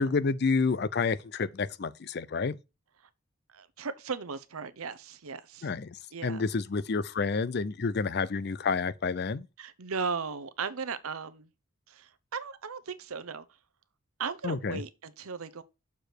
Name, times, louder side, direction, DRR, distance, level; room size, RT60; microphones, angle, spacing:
voice 1, 0.0-2.6 5.6-9.5 14.4-14.8, left 4 dB, 50° left, 0.5 m, -29 dB
voice 2, 3.5-5.7 6.1-6.4 9.6-11.5 11.9-13.4 14.2-15.6, right 5 dB, 90° right, 0.8 m, -37 dB
6.8 x 4.8 x 4.5 m
head